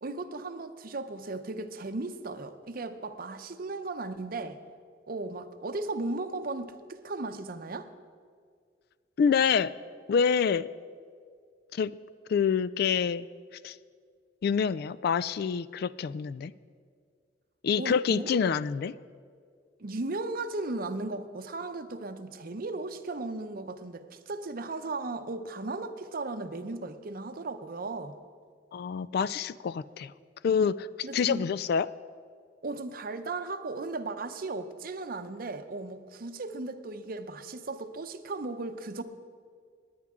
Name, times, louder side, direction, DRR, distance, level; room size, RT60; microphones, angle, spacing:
voice 1, 0.0-4.6 5.1-7.9 17.8-18.3 19.8-28.2 31.0-31.5 32.6-39.0, right 3 dB, 50° right, 9 dB, 0.7 m, -36 dB
voice 2, 9.2-9.7 10.1-10.7 11.7-12.0 12.3-13.3 13.6-13.8 14.4-16.5 17.6-18.9 28.7-30.1 30.4-31.9, left 6 dB, 60° left, 17 dB, 0.3 m, -27 dB
20.0 x 9.5 x 3.7 m, 2.1 s
head